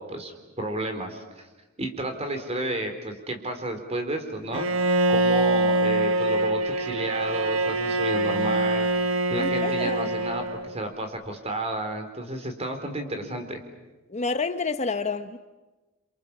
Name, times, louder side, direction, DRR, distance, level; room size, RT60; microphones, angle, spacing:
voice 1, 0.0-1.4 1.8-8.9 9.3-13.6, right 1 dB, 30° right, 4.0 m, -32 dB
Bowed string instrument, 4.5-10.8, right 2 dB, 70° right, 1.3 m, -24 dB
voice 2, 9.4-10.1 14.1-15.4, left 4 dB, 35° left, 0.9 m, -29 dB
29.0 x 26.5 x 7.2 m
head